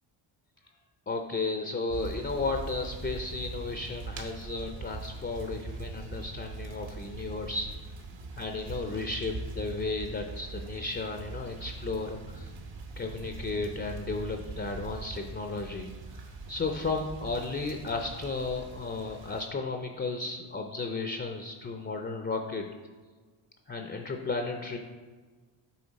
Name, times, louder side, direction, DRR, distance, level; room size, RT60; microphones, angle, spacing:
voice 1, 1.1-7.7 8.3-12.5 13.0-15.9 16.5-22.7 23.7-24.8, left 3 dB, 25° left, 4 dB, 0.5 m, -34 dB
sound 1, 1.9-19.5, right 3 dB, 60° right, 1.1 m, -42 dB
7.2 x 4.3 x 4.1 m, 1.4 s
cardioid pair, 85°, 50 cm